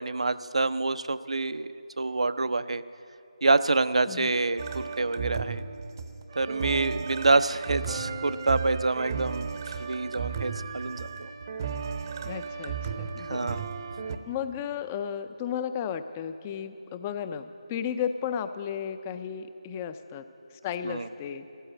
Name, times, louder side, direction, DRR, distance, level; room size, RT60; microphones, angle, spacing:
voice 1, 0.0-2.8 3.4-5.6 6.4-9.5 9.8-11.3 13.2-13.6 20.8-21.1, right 3 dB, 70° right, 14 dB, 0.5 m, -27 dB
sound 1, 4.6-14.2, right 6 dB, 35° right, 0.7 m, -35 dB
voice 2, 12.2-13.6 14.3-20.2 20.6-21.5, left 8 dB, 20° left, 11 dB, 0.4 m, -34 dB
14.0 x 12.0 x 7.7 m, 2.6 s
figure-of-eight pair, 155°, 3 cm